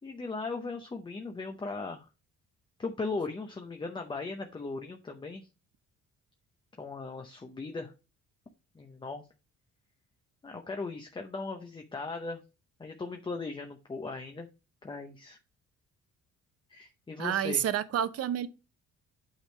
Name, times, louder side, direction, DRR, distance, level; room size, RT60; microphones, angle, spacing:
voice 1, 0.0-2.1 2.8-5.5 6.8-7.9 8.7-9.2 10.4-12.4 12.8-14.5 14.8-15.4 16.7-17.6, left 3 dB, 15° left, 0.7 m, -38 dB
voice 2, 17.2-18.5, right 10 dB, 55° right, 0.7 m, -29 dB
8.9 x 3.5 x 4.4 m
cardioid pair, 135°, 30 cm